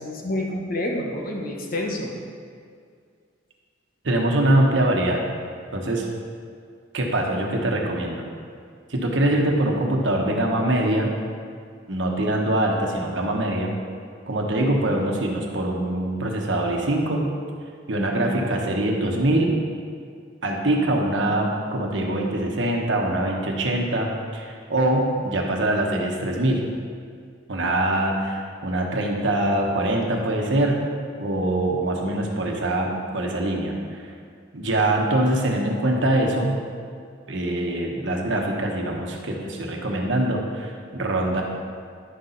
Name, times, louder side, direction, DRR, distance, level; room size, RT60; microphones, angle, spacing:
voice 1, 0.0-2.2, left 1 dB, 50° left, 0 dB, 1.1 m, -28 dB
voice 2, 4.0-5.2 5.7-6.1 6.9-8.2 8.9-11.1 11.9-13.7 14.3-17.3 17.9-19.5 20.4-24.1 24.3-26.7 27.5-30.8 31.2-34.1 34.5-36.6 37.3-41.4, right 1 dB, 70° right, 0 dB, 1.2 m, -23 dB
10.5 x 5.8 x 4.0 m, 2.2 s
head